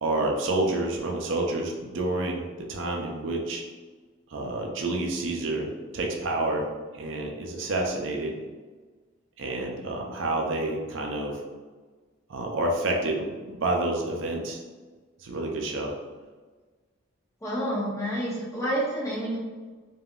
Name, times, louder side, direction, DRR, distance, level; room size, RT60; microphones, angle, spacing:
voice 1, 0.0-3.6 4.3-6.7 7.0-8.3 9.4-11.4 12.3-14.6 15.2-16.0, right 2 dB, 60° right, 0 dB, 0.4 m, -29 dB
voice 2, 17.4-19.4, right 1 dB, 15° left, -6 dB, 0.7 m, -29 dB
3.4 x 2.2 x 2.3 m, 1.4 s
head